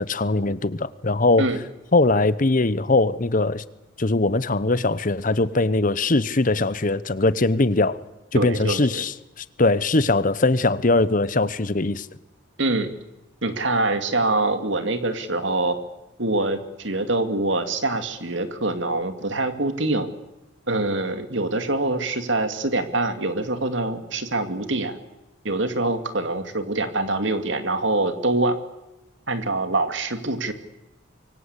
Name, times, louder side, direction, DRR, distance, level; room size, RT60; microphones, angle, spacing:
voice 1, 0.0-1.5 1.9-3.6 4.0-8.0 8.3-12.1, left 2 dB, 40° left, 0.9 m, -21 dB
voice 2, 8.3-9.0 12.6-12.9 13.4-15.8 16.2-20.1 20.7-25.0 25.4-28.6 29.3-30.5, right 2 dB, 65° right, 2.4 m, -24 dB
25.5 x 23.5 x 8.3 m
head